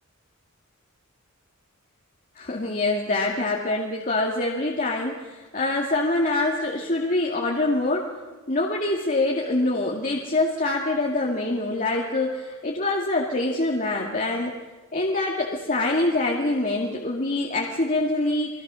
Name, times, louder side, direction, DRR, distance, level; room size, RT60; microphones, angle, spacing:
voice 1, 2.4-8.1 8.5-14.5 14.9-18.5, left 2 dB, 40° left, -1 dB, 2.2 m, -25 dB
29.5 x 21.0 x 6.3 m, 1.3 s
head